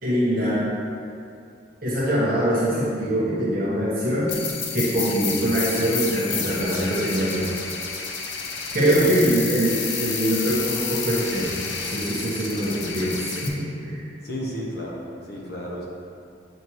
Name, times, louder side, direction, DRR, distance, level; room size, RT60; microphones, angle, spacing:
voice 1, 0.0-0.6 1.8-4.3 4.7-7.5 8.7-14.0, right 1 dB, 50° right, -8 dB, 1.2 m, -23 dB
sound 1, 4.3-13.5, left 5 dB, 90° left, 0.7 m, -30 dB
voice 2, 8.9-9.4 14.2-15.9, equal, 55° left, -3 dB, 1.1 m, -32 dB
7.3 x 5.3 x 3.1 m, 2.4 s
head